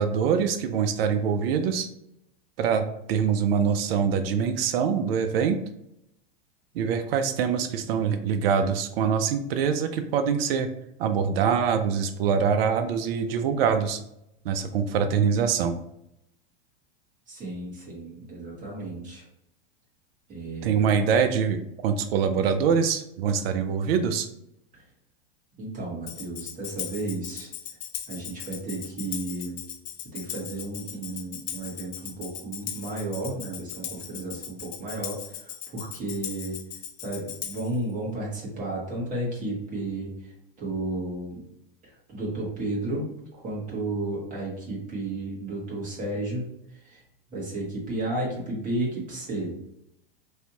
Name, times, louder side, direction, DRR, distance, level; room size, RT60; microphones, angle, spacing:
voice 1, 0.0-1.9 2.6-5.6 6.7-10.7 11.0-14.0 14.4-15.8 20.6-24.3, right 6 dB, 75° right, 8 dB, 0.5 m, -24 dB
voice 2, 17.3-19.2 20.3-20.9 24.7-24.8 25.6-27.5 28.1-29.6 30.1-36.6 37.0-41.4 41.8-46.4 46.7-47.0 47.3-49.5, right 2 dB, 25° right, -5 dB, 1.5 m, -33 dB
Tambourine, 26.1-37.8, left 10 dB, 80° left, 0.6 m, -38 dB
3.3 x 2.6 x 2.8 m, 0.80 s
hypercardioid pair, 120°, 30 cm